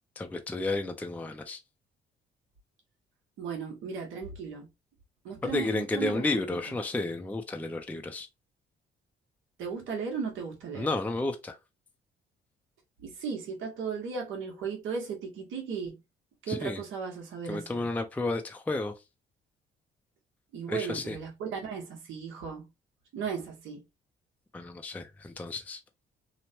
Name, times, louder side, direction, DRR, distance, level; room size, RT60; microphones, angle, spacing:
voice 1, 0.2-1.6 5.4-8.3 10.8-11.6 16.5-16.8 17.5-18.9 20.7-21.2 24.5-25.8, left 2 dB, 10° left, 0.4 m, -32 dB
voice 2, 3.4-4.7 5.2-6.4 6.7-6.8 9.6-10.9 13.0-16.0 16.4-17.9 20.5-22.7 23.1-23.8, right 6 dB, 80° right, 1.1 m, -36 dB
3.0 x 2.1 x 2.7 m
cardioid pair, 90°, 20 cm